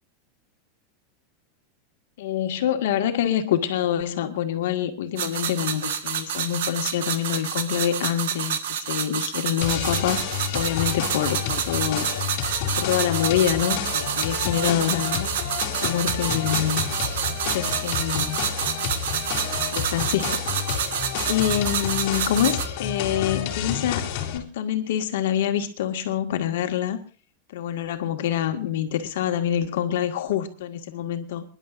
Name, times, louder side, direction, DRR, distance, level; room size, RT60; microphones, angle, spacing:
voice 1, 2.2-10.2 10.5-12.1 12.8-15.3 15.8-16.8 17.5-18.4 19.7-20.4 20.7-27.0 27.5-31.4, left 10 dB, 70° left, 6 dB, 2.0 m, -26 dB
sound 1, 5.2-22.7, right 8 dB, 90° right, 1.5 m, -28 dB
sound 2, 9.6-24.4, left 9 dB, 45° left, 2.7 m, -30 dB
28.5 x 11.0 x 2.6 m, 0.37 s
supercardioid pair, 175°, 0 cm